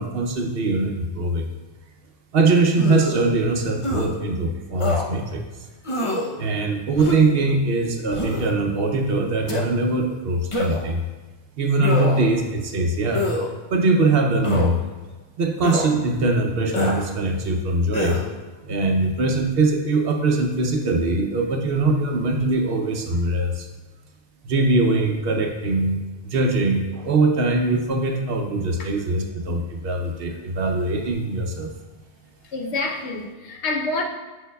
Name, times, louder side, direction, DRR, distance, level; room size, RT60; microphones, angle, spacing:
voice 1, 0.0-1.5 2.3-5.4 6.4-11.0 11.6-13.3 13.7-14.8 15.4-18.2 18.6-23.7 24.4-31.7, right 2 dB, 60° right, 0.8 m, -22 dB
sound 1, 2.8-3.2 3.8-4.1 4.8-5.0 5.8-6.3 7.0-7.3 8.1-8.5 9.5-9.6 10.5-10.9 11.8-12.3 13.1-13.5 14.4-14.7 15.6-15.9 16.7-17.0 17.9-18.3, left 2 dB, 35° left, 0.6 m, -25 dB
voice 2, 32.5-34.0, left 3 dB, 75° left, 1.0 m, -27 dB
7.4 x 6.5 x 2.3 m
omnidirectional pair, 1.1 m